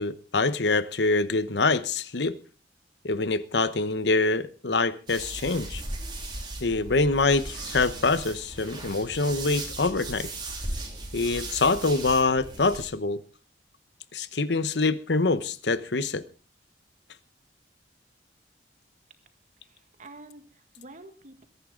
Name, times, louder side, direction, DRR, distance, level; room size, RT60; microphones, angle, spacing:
voice 1, 0.0-2.4 3.0-5.8 6.6-10.3 11.1-13.2 14.1-16.2, left 3 dB, 70° left, 1.0 m, -25 dB
sound 1, 5.1-12.9, right 2 dB, 25° right, 3.6 m, -37 dB
voice 2, 19.6-21.5, right 2 dB, 45° right, 1.9 m, -48 dB
22.0 x 11.0 x 3.8 m
head